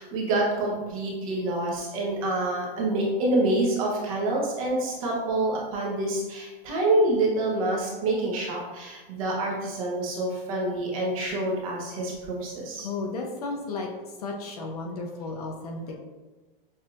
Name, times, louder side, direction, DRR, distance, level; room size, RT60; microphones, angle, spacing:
voice 1, 0.0-12.9, right 2 dB, 40° right, -3 dB, 1.0 m, -27 dB
voice 2, 12.8-13.9 14.2-16.0, left 3 dB, 45° left, 1 dB, 0.5 m, -33 dB
6.4 x 2.6 x 2.4 m, 1.2 s
supercardioid pair, 180°, 29 cm